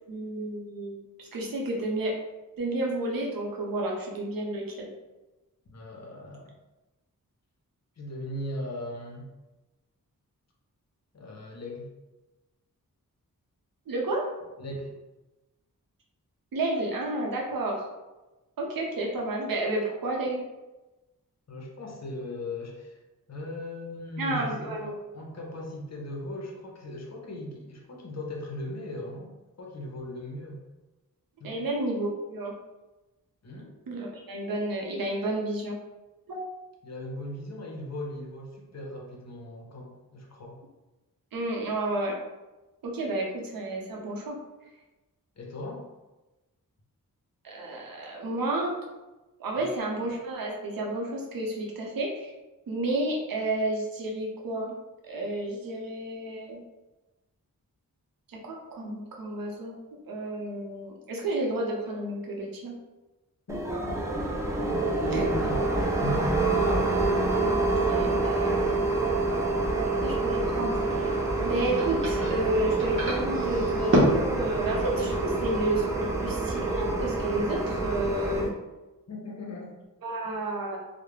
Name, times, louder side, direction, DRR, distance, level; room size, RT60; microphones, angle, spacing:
voice 1, 0.1-2.2 2.6-4.9 13.9-14.3 16.5-17.9 18.6-20.4 24.2-24.8 31.4-32.5 33.9-35.8 36.3-36.5 41.3-42.2 42.8-44.4 47.4-48.8 49.4-52.3 52.7-54.8 55.1-56.6 58.3-59.7 60.1-62.7 65.1-65.3 67.4-67.6 67.8-68.8 70.0-71.1 71.4-78.5 80.0-80.8, right 1 dB, 80° right, -1 dB, 0.6 m, -31 dB
voice 2, 5.7-6.5 8.0-9.2 11.1-11.9 14.6-14.9 21.5-23.0 23.3-29.3 29.6-30.6 31.4-31.6 33.4-33.7 36.8-40.6 45.4-45.8 49.5-49.7 63.5-64.1 64.4-66.5 79.1-79.8, left 1 dB, 50° left, -1 dB, 0.6 m, -38 dB
sound 1, 63.5-78.5, right 3 dB, 10° right, 0.4 m, -27 dB
sound 2, 70.6-75.7, equal, 35° right, 0.8 m, -30 dB
2.3 x 2.0 x 3.1 m, 1.1 s
wide cardioid pair, 75°, 34 cm